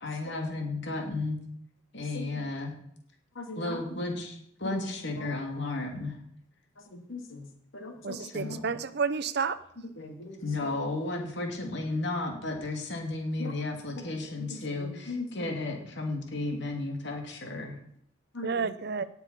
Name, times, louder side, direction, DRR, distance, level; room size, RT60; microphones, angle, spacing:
voice 1, 0.0-1.4 1.9-2.7 3.6-6.2 8.2-8.7 10.4-17.8, left 2 dB, 60° left, 2 dB, 2.8 m, -33 dB
voice 2, 2.0-2.3 3.3-3.8 4.6-4.8 5.2-5.3 6.8-7.5 7.7-8.6 10.0-10.8 13.4-13.6 13.9-14.0 14.4-15.5 16.5-16.6 18.3-18.7, left 2 dB, 85° left, 4 dB, 2.3 m, -40 dB
voice 3, 8.0-9.6 18.4-19.0, right 5 dB, 55° right, 14 dB, 0.7 m, -30 dB
18.0 x 6.9 x 5.7 m, 0.71 s
head